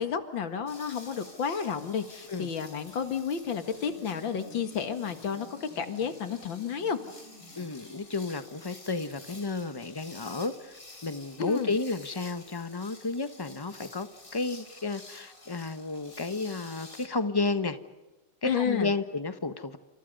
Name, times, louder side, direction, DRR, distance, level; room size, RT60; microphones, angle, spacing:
voice 1, 0.0-7.0 11.4-11.7 18.4-18.9, left 7 dB, 65° left, 9 dB, 2.4 m, -31 dB
sound 1, 0.7-17.1, left 2 dB, 40° left, 4.5 m, -51 dB
sound 2, 3.4-8.3, left 1 dB, 70° right, 8.7 m, -53 dB
voice 2, 7.5-17.8 18.4-19.8, left 3 dB, 15° left, 10 dB, 0.9 m, -32 dB
29.5 x 28.0 x 5.4 m, 1.1 s
omnidirectional pair, 2.3 m